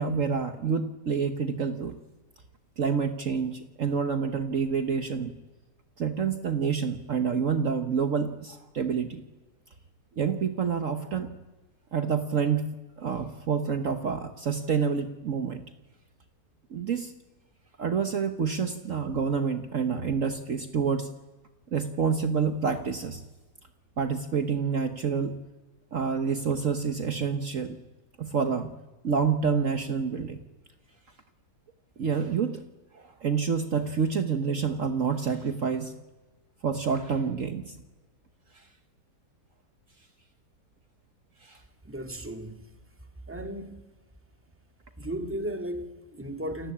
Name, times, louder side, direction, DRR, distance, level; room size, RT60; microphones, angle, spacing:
voice 1, 0.0-2.0 2.8-5.3 6.0-9.2 10.2-11.4 11.9-15.6 16.7-17.1 17.8-21.1 21.7-23.2 24.0-25.4 25.9-27.8 28.2-28.7 29.0-30.4 32.0-32.6 32.9-35.9 36.6-37.8 38.5-38.6 41.4-41.6, right 6 dB, 55° right, 1.4 m, -28 dB
voice 2, 41.9-42.6 43.3-43.8 45.0-46.7, right 1 dB, 10° right, 1.9 m, -35 dB
28.5 x 18.5 x 8.7 m
omnidirectional pair, 1.8 m